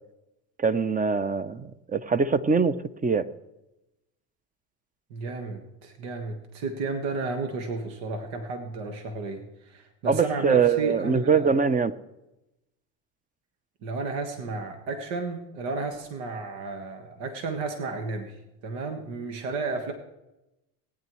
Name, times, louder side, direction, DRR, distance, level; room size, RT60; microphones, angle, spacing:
voice 1, 0.6-3.3 10.1-11.9, right 5 dB, 15° right, 15 dB, 0.6 m, -23 dB
voice 2, 5.1-11.5 13.8-19.9, right 3 dB, 75° right, 5 dB, 1.6 m, -33 dB
19.5 x 9.7 x 3.1 m, 0.93 s
supercardioid pair, 80°, 48 cm